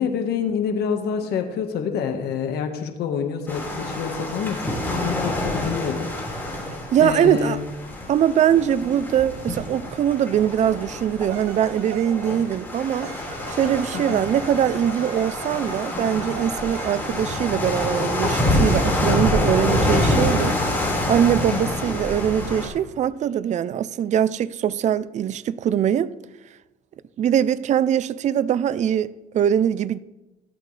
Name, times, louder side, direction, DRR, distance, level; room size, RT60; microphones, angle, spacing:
voice 1, 0.0-6.1 7.0-7.6 13.9-14.2 21.5-21.8, left 7 dB, 70° left, 1.5 m, -27 dB
sound 1, 3.5-22.7, left 1 dB, 10° left, 4.7 m, -26 dB
voice 2, 6.9-7.6 8.1-13.1 13.5-20.6 21.1-26.1 27.2-30.0, right 9 dB, 45° right, 0.5 m, -22 dB
sound 2, 11.3-12.4 13.0-17.2, right 8 dB, 85° right, 1.2 m, -39 dB
17.0 x 11.0 x 3.3 m
cardioid pair, 110°, 17 cm